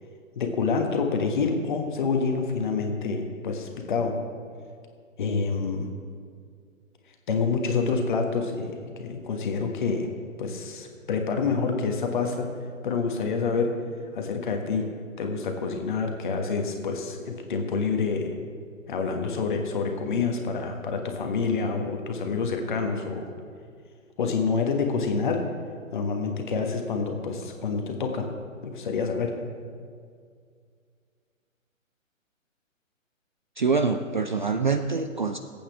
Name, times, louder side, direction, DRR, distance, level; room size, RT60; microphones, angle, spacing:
voice 1, 0.3-4.1 5.2-5.9 7.3-10.1 10.4-12.5 12.8-13.7 14.1-14.8 15.2-18.3 18.9-23.3 24.2-25.4 25.9-28.3 28.6-29.3, left 4 dB, 35° left, 4 dB, 1.5 m, -27 dB
voice 2, 33.6-35.4, right 4 dB, 40° right, 7 dB, 0.4 m, -25 dB
21.0 x 8.6 x 3.5 m, 2.1 s
figure-of-eight pair, 130°, 40 cm